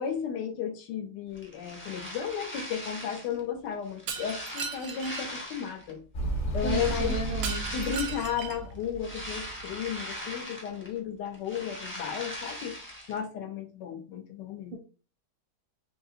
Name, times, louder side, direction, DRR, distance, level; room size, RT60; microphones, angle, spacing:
voice 1, 0.0-6.0 6.5-12.8 13.1-14.8, left 8 dB, 85° left, 5 dB, 1.3 m, -34 dB
sound 1, 1.4-3.4 3.8-5.9 6.5-8.3 8.7-11.0 11.3-13.2, left 1 dB, 15° left, 0.3 m, -40 dB
Shatter, 4.1-5.2 7.4-8.7, right 6 dB, 80° right, 1.2 m, -37 dB
Motorcycle, 6.1-10.1, right 2 dB, 50° left, 0.9 m, -34 dB
voice 2, 6.6-7.6, right 2 dB, 60° right, 0 dB, 0.5 m, -33 dB
4.0 x 2.7 x 2.5 m, 0.37 s
omnidirectional pair, 1.9 m